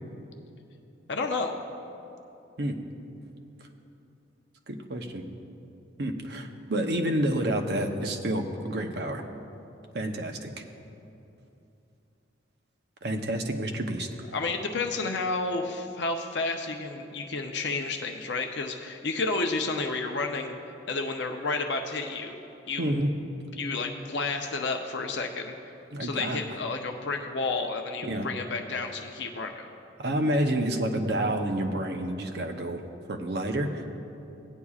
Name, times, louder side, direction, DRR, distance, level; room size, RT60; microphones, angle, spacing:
voice 1, 1.1-1.5 14.3-20.6 20.9-22.4 22.7-22.9 23.6-25.5 26.0-29.6, left 3 dB, 65° left, 4 dB, 0.6 m, -31 dB
voice 2, 4.7-5.2 6.0-9.2 9.9-10.6 13.0-14.1 22.8-23.1 25.9-26.4 28.0-28.3 30.0-32.8 33.1-34.0, right 1 dB, 60° right, 4 dB, 0.7 m, -29 dB
17.0 x 9.8 x 2.4 m, 2.8 s
head